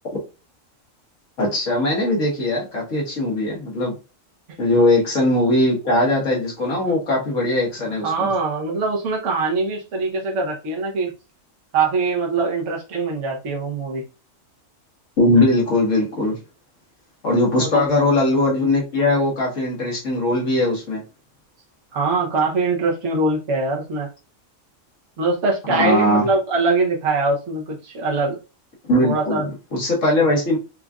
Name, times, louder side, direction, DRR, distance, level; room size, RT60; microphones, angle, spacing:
voice 1, 1.4-4.0 4.6-8.3 15.2-16.4 17.2-21.0 25.7-26.3 28.8-30.6, left 1 dB, 75° left, 1.7 m, -20 dB
voice 2, 8.0-11.1 11.7-14.0 17.5-17.8 21.9-24.1 25.2-28.4 29.0-29.5, right 3 dB, 65° right, 1.3 m, -22 dB
4.9 x 2.5 x 2.3 m
omnidirectional pair, 1.3 m